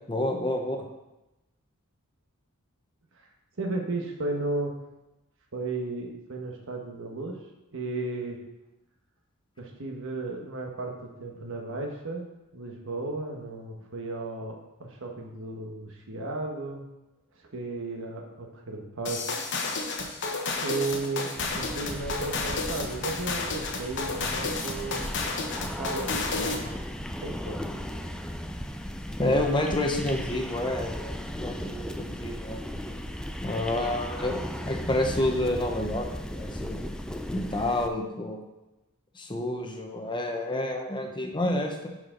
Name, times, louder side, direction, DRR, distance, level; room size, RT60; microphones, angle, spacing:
voice 1, 0.1-0.8 29.2-32.6 33.4-34.4 34.7-36.8 37.3-38.4 39.2-41.9, left 1 dB, 20° left, 3 dB, 0.9 m, -29 dB
voice 2, 3.6-4.7 5.5-7.4 7.7-8.4 9.6-12.3 12.5-16.8 17.5-19.2 20.5-25.0 25.6-26.8 27.2-27.8 32.7-32.8 41.3-41.4, right 2 dB, 65° right, 1 dB, 1.3 m, -34 dB
sound 1, 19.1-26.7, left 3 dB, 55° left, 1.1 m, -31 dB
sound 2, 21.4-37.9, equal, 5° left, 0.4 m, -36 dB
10.5 x 4.8 x 3.8 m, 0.99 s
head